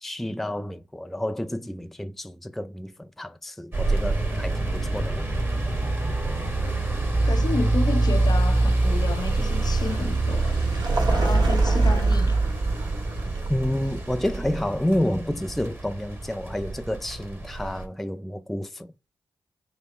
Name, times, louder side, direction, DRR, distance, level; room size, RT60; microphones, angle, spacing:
voice 1, 0.0-5.3 13.5-18.9, left 1 dB, ahead, 0.4 m, -29 dB
sound 1, 3.7-17.9, right 2 dB, 25° right, 1.7 m, -25 dB
voice 2, 7.2-10.6 11.1-12.4, left 4 dB, 45° left, 0.7 m, -31 dB
Vehicle, 7.4-16.2, right 3 dB, 50° right, 1.4 m, -31 dB
5.0 x 2.1 x 4.2 m
supercardioid pair, 45°, 9 cm